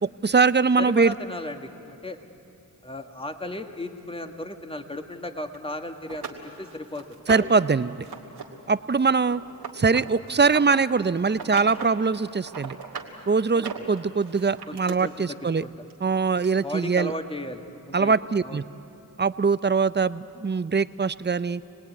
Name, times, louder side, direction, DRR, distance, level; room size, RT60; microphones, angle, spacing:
voice 1, 0.0-1.1 7.3-8.1 8.7-9.4 9.7-12.8 13.3-15.6 16.0-17.1 17.9-18.6 19.2-21.6, right 4 dB, 30° right, 15 dB, 0.7 m, -22 dB
voice 2, 0.8-2.2 2.8-7.1 7.4-7.5 13.6-13.8 14.7-15.7 16.6-18.1 18.4-18.6, left 1 dB, 15° left, 6 dB, 1.8 m, -35 dB
sound 1, 5.5-5.6 6.1-7.6 8.0-8.4 8.7-10.8 11.3-11.9 12.3-13.1 13.5-14.9 15.9-16.0 16.4-16.5, right 6 dB, 90° right, 2.4 m, -37 dB
27.0 x 19.0 x 9.6 m, 2.8 s
cardioid pair, 45°, 38 cm